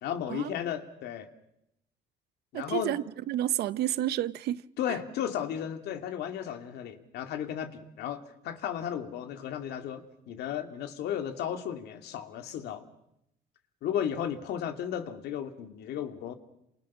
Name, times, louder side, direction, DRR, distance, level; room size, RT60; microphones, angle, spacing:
voice 1, 0.0-1.3 2.5-3.0 4.8-12.9 13.8-16.3, left 9 dB, 75° left, 2.6 m, -34 dB
voice 2, 2.5-4.6 4.9-5.0, right 13 dB, 75° right, 0.9 m, -30 dB
28.5 x 27.0 x 6.2 m
cardioid pair, 110°, 17 cm